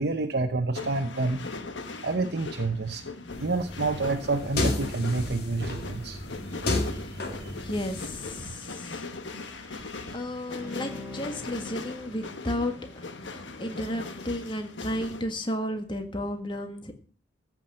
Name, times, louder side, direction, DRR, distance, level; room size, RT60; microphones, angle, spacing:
voice 1, 0.0-1.4 2.0-3.0 3.4-6.2 9.7-9.8, right 3 dB, 60° right, 6 dB, 0.9 m, -28 dB
sound 1, 0.7-15.2, left 3 dB, 80° left, 1.3 m, -40 dB
sound 2, 3.3-8.4, left 2 dB, 55° left, 2.4 m, -32 dB
voice 2, 7.6-9.1 10.1-12.7 13.6-16.9, left 1 dB, 25° left, 5 dB, 1.7 m, -33 dB
Bowed string instrument, 10.5-15.1 15.5-15.6, left 2 dB, 5° right, 6.2 m, -46 dB
14.5 x 6.0 x 7.6 m, 0.41 s
head